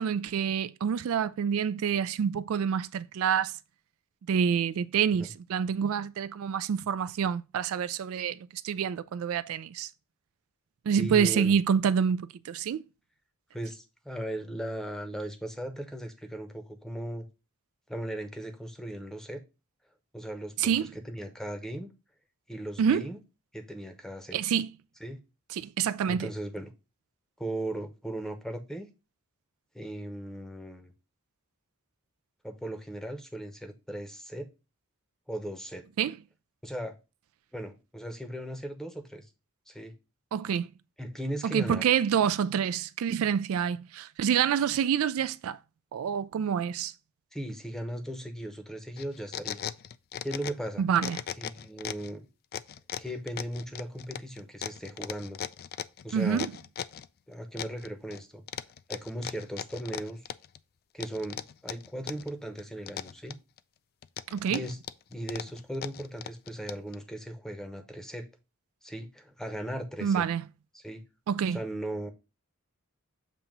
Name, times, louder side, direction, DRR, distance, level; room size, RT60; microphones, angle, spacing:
voice 1, 0.0-3.5 4.3-8.4 8.6-9.9 10.9-12.8 20.6-20.9 22.8-23.1 24.3-24.7 25.5-26.3 36.0-36.1 40.3-40.7 41.4-45.6 45.9-46.9 50.8-51.2 56.1-56.5 64.3-64.6 70.0-70.4 71.3-71.6, right 7 dB, 65° right, 0.3 m, -27 dB
voice 2, 11.0-11.6 13.5-17.3 17.9-19.4 20.1-21.9 22.5-23.2 23.5-24.4 25.0-25.2 26.1-26.7 27.4-28.9 29.7-30.9 32.4-34.5 35.3-35.8 36.6-36.9 37.5-39.3 39.7-39.9 41.0-41.8 47.3-49.6 50.2-50.8 51.4-52.2 53.0-55.4 56.0-56.5 57.3-58.4 58.9-60.2 60.9-63.4 64.5-64.8 65.1-68.3 68.8-70.2 70.7-71.0 71.5-72.1, right 1 dB, ahead, 0.8 m, -37 dB
sound 1, 49.0-50.7 51.0-52.1 52.5-57.1 57.6-58.2 58.5-60.6 61.0-62.3 62.6-63.6 64.0-67.0, left 9 dB, 45° left, 0.3 m, -38 dB
7.3 x 2.8 x 5.3 m
head